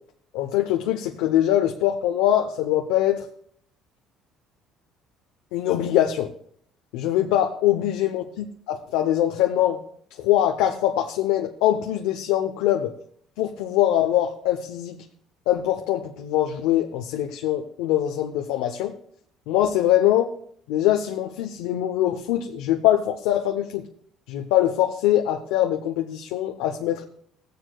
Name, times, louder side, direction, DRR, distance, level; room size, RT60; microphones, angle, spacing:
voice 1, 0.3-3.2 5.5-6.3 6.9-9.8 10.2-12.9 13.4-15.0 15.5-18.9 19.5-20.3 20.7-23.8 24.3-27.0, left 12 dB, 85° left, 4 dB, 0.7 m, -23 dB
15.5 x 9.2 x 2.3 m, 0.64 s
supercardioid pair, 85°, 0 cm